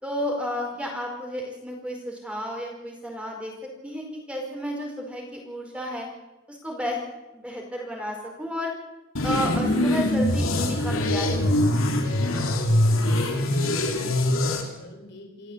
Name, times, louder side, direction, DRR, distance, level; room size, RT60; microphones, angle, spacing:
voice 1, 0.0-3.5 3.8-6.1 6.5-7.0 7.3-8.7 9.2-11.6, equal, 5° right, 1 dB, 4.6 m, -32 dB
sound 1, 9.1-14.6, left 1 dB, 85° left, 3.3 m, -23 dB
voice 2, 13.0-15.5, left 1 dB, 55° left, 3 dB, 3.9 m, -46 dB
27.5 x 14.0 x 8.1 m, 1.0 s
head